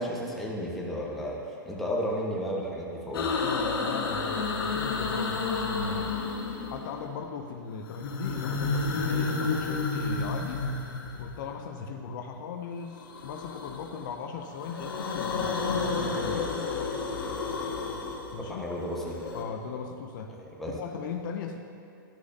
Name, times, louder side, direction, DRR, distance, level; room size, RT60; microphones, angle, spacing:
voice 1, 0.0-3.4 18.4-19.2 20.6-20.7, equal, ahead, -4 dB, 1.3 m, -33 dB
sound 1, 3.1-7.1 7.8-11.6 12.9-14.1 14.4-19.4, left 4 dB, 80° left, 1.2 m, -31 dB
voice 2, 3.4-6.1 6.7-10.6 11.2-16.6 18.3-18.7 19.3-20.3 20.7-21.6, left 5 dB, 60° left, 4 dB, 0.6 m, -38 dB
11.5 x 6.3 x 2.8 m, 2.6 s
hypercardioid pair, 120°, 12 cm